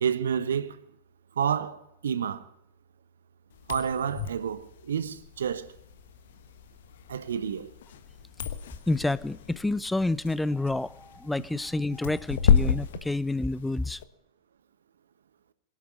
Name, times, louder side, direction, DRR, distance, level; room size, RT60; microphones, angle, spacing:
voice 1, 0.0-0.8 1.4-2.4 3.7-5.7 7.1-7.7, right 7 dB, 65° right, 1.0 m, -29 dB
sound 1, 3.5-14.0, left 7 dB, 60° left, 1.2 m, -31 dB
voice 2, 8.9-14.0, left 2 dB, 5° left, 0.5 m, -29 dB
21.5 x 12.0 x 5.3 m
figure-of-eight pair, 90°, 0 cm